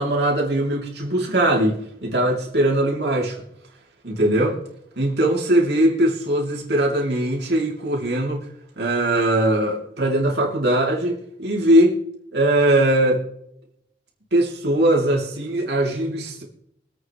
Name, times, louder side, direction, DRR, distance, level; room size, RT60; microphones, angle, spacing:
voice 1, 0.0-3.4 4.0-4.6 5.0-8.5 8.8-12.0 12.3-13.2 14.3-16.4, right 1 dB, 65° right, -1 dB, 3.1 m, -20 dB
24.5 x 8.6 x 3.2 m, 0.77 s
head